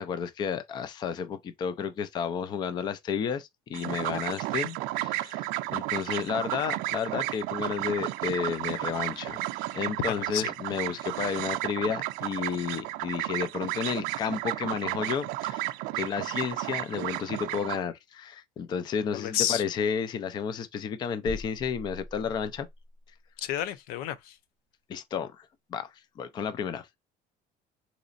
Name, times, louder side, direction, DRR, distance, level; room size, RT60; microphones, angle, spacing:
voice 1, 0.0-9.4 9.7-22.7 24.9-25.9 26.2-26.9, left 7 dB, 30° left, 0.4 m, -32 dB
sound 1, 3.7-17.8, right 17 dB, 80° right, 0.4 m, -33 dB
voice 2, 10.1-10.4 19.1-19.6 23.4-24.3, left 11 dB, 75° left, 0.6 m, -30 dB
sound 2, 22.6-22.9, left 1 dB, 60° left, 1.8 m, -42 dB
3.9 x 3.0 x 2.5 m
cardioid pair, 170°, 15 cm